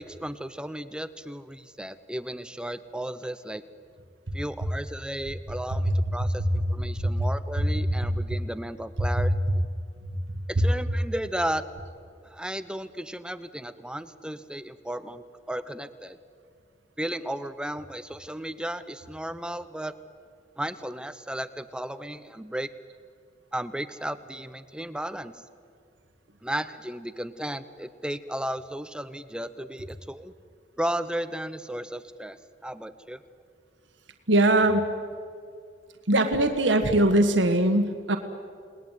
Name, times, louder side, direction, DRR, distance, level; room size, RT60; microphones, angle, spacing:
voice 1, 0.0-3.6 4.3-9.6 10.5-11.6 12.2-16.2 17.0-19.9 20.6-22.7 23.5-25.3 26.4-30.3 30.8-33.2, right 1 dB, 5° right, 12 dB, 0.7 m, -34 dB
voice 2, 10.3-10.6 34.3-34.9 36.1-38.2, right 1 dB, 80° right, 6 dB, 1.7 m, -22 dB
30.0 x 20.0 x 9.2 m, 2.3 s
head